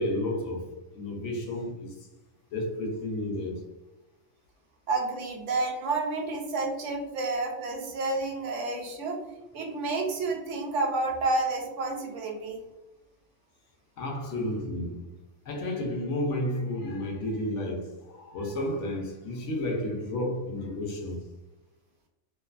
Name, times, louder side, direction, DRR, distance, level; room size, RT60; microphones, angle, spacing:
voice 1, 0.0-2.1 2.5-3.7 14.0-15.2 15.5-21.3, left 1 dB, 75° left, 0.9 m, -32 dB
voice 2, 4.9-9.2 9.5-12.6, right 3 dB, 80° right, 0.9 m, -30 dB
2.6 x 2.2 x 2.3 m
omnidirectional pair, 1.3 m